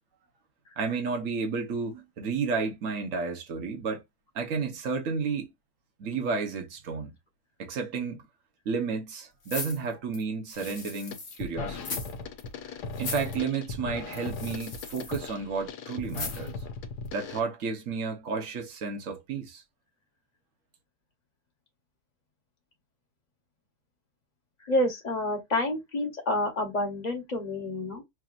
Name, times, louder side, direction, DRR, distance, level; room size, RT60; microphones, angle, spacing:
voice 1, 0.8-4.0 4.3-5.5 6.0-7.1 7.6-8.2 8.6-12.0 13.0-16.5 17.1-19.6, right 5 dB, 55° right, 1.5 m, -32 dB
sound 1, 9.4-11.4 11.8-12.1 12.4-12.5 12.9-13.4 14.1-15.3 16.1-16.6 17.1-17.2, left 4 dB, 50° left, 1.6 m, -38 dB
sound 2, 10.5-10.8 11.1-17.4, left 4 dB, 75° left, 1.4 m, -38 dB
voice 2, 24.6-28.0, left 1 dB, 30° left, 1.3 m, -28 dB
6.1 x 2.8 x 2.5 m
omnidirectional pair, 1.7 m